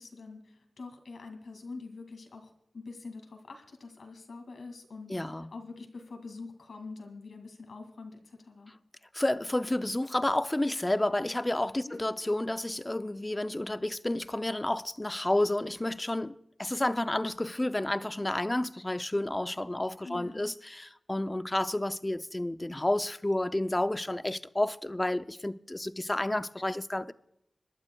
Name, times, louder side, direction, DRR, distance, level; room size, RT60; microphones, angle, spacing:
voice 1, 0.0-8.7 11.8-12.0 20.0-20.5, left 3 dB, 80° left, 2.1 m, -45 dB
voice 2, 5.1-5.5 9.1-16.3 16.6-27.1, left 1 dB, 15° left, 0.4 m, -30 dB
25.5 x 12.0 x 2.2 m
wide cardioid pair, 115°, 0 cm